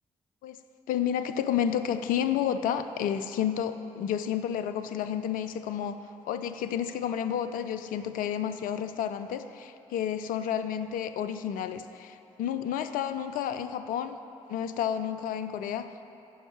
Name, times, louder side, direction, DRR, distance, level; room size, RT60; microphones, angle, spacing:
voice 1, 0.9-6.0 6.3-14.2 14.5-15.9, left 9 dB, 70° left, 10 dB, 0.4 m, -31 dB
9.4 x 5.4 x 5.6 m, 2.8 s
hypercardioid pair, 40°, 15 cm